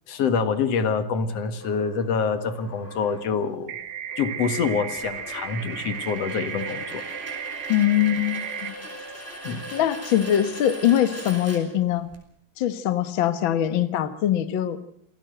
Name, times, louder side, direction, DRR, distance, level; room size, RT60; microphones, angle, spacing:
voice 1, 0.1-3.8 4.2-7.0 9.4-9.7, left 5 dB, 55° left, 11 dB, 2.3 m, -26 dB
sound 1, 1.6-12.2, right 1 dB, 5° left, 4.5 m, -40 dB
sound 2, 3.7-8.7, right 9 dB, 75° right, 3.1 m, -34 dB
voice 2, 7.7-8.8 9.7-12.1 12.6-14.8, left 11 dB, 75° left, 13 dB, 1.1 m, -22 dB
27.5 x 17.5 x 7.8 m, 0.66 s
omnidirectional pair, 4.1 m